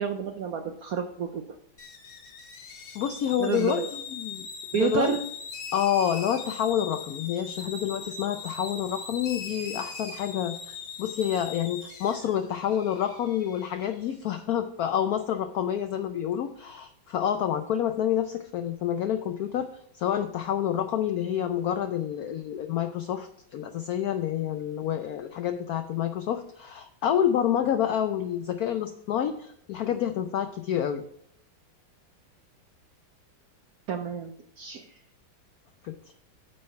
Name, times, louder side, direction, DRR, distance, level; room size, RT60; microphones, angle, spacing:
voice 1, 0.0-1.6 3.4-3.9 4.7-5.2 33.9-35.0, right 7 dB, 75° right, 6 dB, 0.8 m, -30 dB
sound 1, 1.8-14.0, left 5 dB, 55° left, 1.5 m, -41 dB
voice 2, 2.9-3.8 4.2-4.5 4.7-5.1 5.7-19.7 20.0-31.0 35.9-36.0, left 10 dB, 80° left, 9 dB, 0.8 m, -28 dB
8.6 x 4.5 x 5.5 m, 0.71 s
omnidirectional pair, 2.1 m